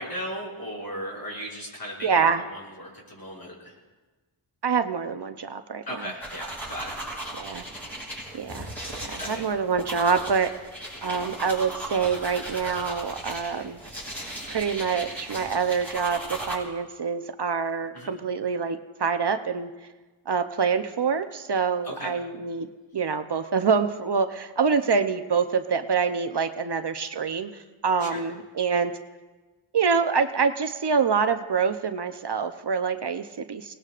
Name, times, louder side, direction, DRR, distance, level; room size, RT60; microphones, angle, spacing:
voice 1, 0.0-2.1 2.4-3.8 5.9-6.9 9.2-9.5 17.9-18.1 21.8-22.1 28.0-28.2, equal, 45° left, -5 dB, 6.0 m, -36 dB
voice 2, 2.0-2.4 4.6-6.1 7.4-7.6 8.3-8.7 9.0-10.5 11.0-13.8 14.5-19.7 20.3-22.7 22.9-28.9 29.7-33.7, right 6 dB, 55° right, 8 dB, 0.8 m, -26 dB
sound 1, 6.2-16.6, right 1 dB, 5° left, 5.5 m, -37 dB
29.0 x 19.0 x 2.5 m, 1.2 s
wide cardioid pair, 90°, 49 cm